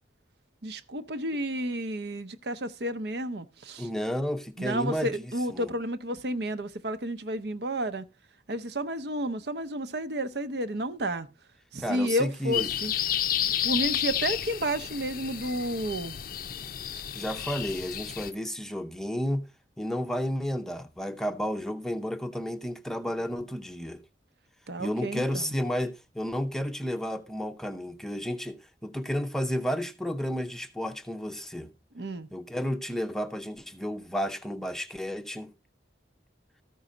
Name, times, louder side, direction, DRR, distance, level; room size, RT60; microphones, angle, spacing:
voice 1, 0.6-3.9 4.6-8.1 8.5-11.3 11.7-12.9 13.6-16.1 24.7-25.5 31.9-32.3, right 1 dB, 70° right, 0.7 m, -31 dB
voice 2, 3.8-5.2 5.5-5.7 11.8-12.7 17.1-19.5 19.8-24.0 24.8-31.7 32.3-35.5, equal, 5° left, 0.6 m, -32 dB
sound 1, 12.5-18.3, left 11 dB, 50° left, 0.5 m, -31 dB
13.5 x 5.5 x 5.0 m
head